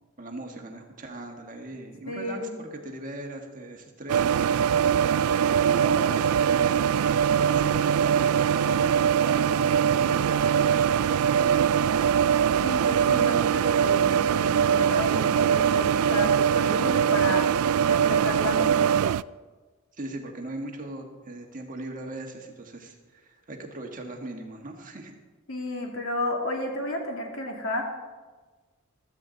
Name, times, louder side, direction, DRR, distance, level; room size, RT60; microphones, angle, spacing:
voice 1, 0.2-4.6 5.4-6.9 7.4-11.9 20.0-25.2, right 2 dB, 35° right, 2 dB, 1.6 m, -39 dB
voice 2, 2.1-2.5 12.6-17.5 17.9-19.0 25.5-27.8, left 2 dB, 70° left, 1 dB, 2.4 m, -32 dB
sound 1, 4.1-19.2, right 8 dB, 80° right, 0.3 m, -22 dB
15.0 x 13.5 x 4.0 m, 1.3 s
head